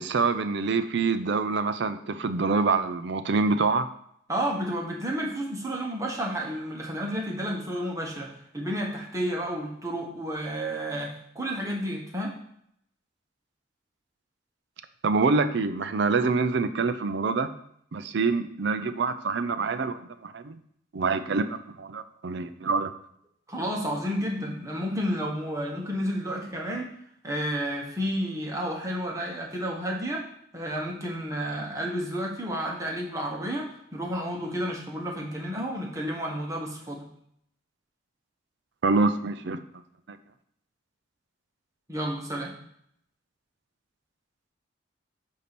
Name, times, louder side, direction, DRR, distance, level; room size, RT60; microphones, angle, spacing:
voice 1, 0.0-3.9 15.0-17.5 17.9-20.6 20.9-22.9 38.8-39.6 40.1-40.2, right 4 dB, 60° right, 10 dB, 0.5 m, -26 dB
voice 2, 4.3-12.4 23.5-26.9 27.2-30.2 30.5-37.1 41.9-42.5, equal, 15° right, -2 dB, 1.2 m, -31 dB
8.3 x 2.8 x 6.0 m, 0.71 s
head